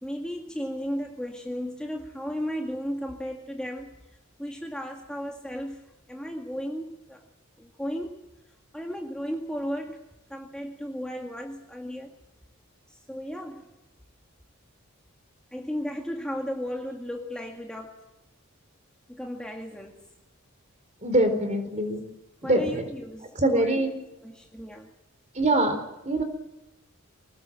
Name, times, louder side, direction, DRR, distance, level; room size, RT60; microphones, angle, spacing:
voice 1, 0.0-5.8 6.1-7.2 7.6-8.2 8.7-10.0 10.3-12.1 12.9-13.7 15.5-17.9 19.1-20.1 21.4-21.5 22.4-23.7 24.2-24.9, equal, 5° left, 0 dB, 2.0 m, -35 dB
voice 2, 21.0-22.0 22.4-22.8 23.3-23.9 25.3-26.2, right 1 dB, 30° right, 7 dB, 4.4 m, -24 dB
25.0 x 19.0 x 7.7 m, 0.94 s
head